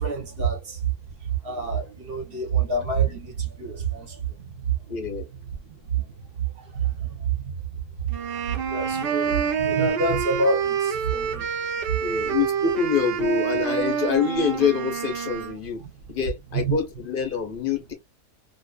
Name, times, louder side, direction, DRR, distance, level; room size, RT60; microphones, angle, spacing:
voice 1, 0.0-12.4 15.8-16.2 16.5-16.8, right 5 dB, 50° right, 0.8 m, -28 dB
voice 2, 4.9-5.3 12.0-15.8 16.1-17.9, left 6 dB, 55° left, 0.6 m, -26 dB
sound 1, 8.1-15.6, right 7 dB, 85° right, 0.5 m, -27 dB
2.6 x 2.4 x 2.3 m
omnidirectional pair, 1.7 m